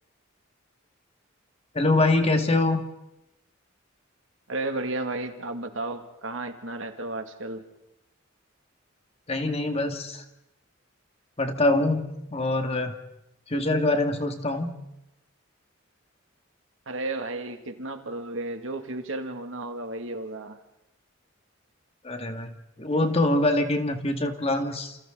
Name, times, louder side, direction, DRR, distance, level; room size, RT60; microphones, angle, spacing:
voice 1, 1.7-2.8 9.3-10.2 11.4-13.0 13.5-14.7 22.0-25.0, left 2 dB, 30° left, 5 dB, 2.1 m, -24 dB
voice 2, 4.5-7.6 16.9-20.6, right 2 dB, 75° right, 5 dB, 2.4 m, -33 dB
29.0 x 28.5 x 4.0 m, 0.89 s
head